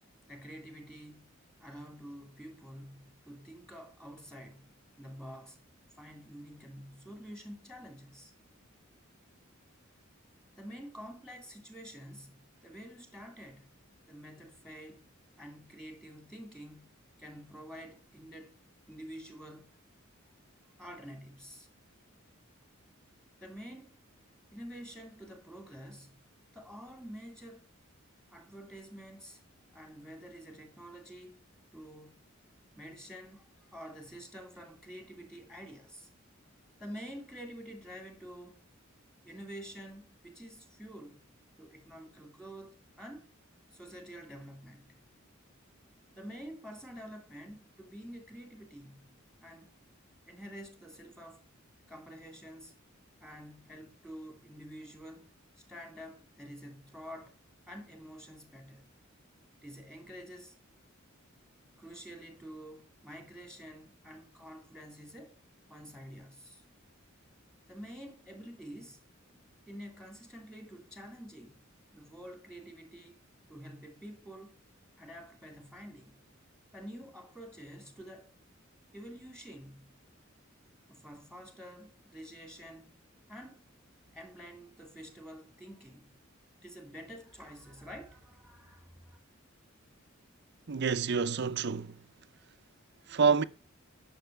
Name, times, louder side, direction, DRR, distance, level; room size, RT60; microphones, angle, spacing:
voice 1, 0.3-5.6 6.0-8.3 10.6-13.8 14.1-15.1 15.4-18.6 18.9-19.7 20.8-21.7 23.4-24.0 24.5-26.3 26.5-27.7 28.3-29.4 29.7-31.4 31.7-32.2 32.7-36.1 36.8-38.6 39.2-41.2 41.6-43.3 43.7-45.0 46.2-49.1 49.4-49.8 50.3-51.5 51.9-52.8 53.2-57.4 57.7-58.9 59.6-60.6 61.8-65.4 65.7-66.6 67.7-69.1 69.7-71.7 71.9-73.2 73.5-74.5 75.0-76.2 76.7-78.3 78.9-80.0 80.9-83.0 83.3-83.7 84.1-86.1 86.6-89.2, equal, 5° left, 2.5 m, -48 dB
voice 2, 90.7-92.0 93.1-93.4, right 5 dB, 55° right, 0.6 m, -27 dB
10.5 x 6.3 x 4.5 m
head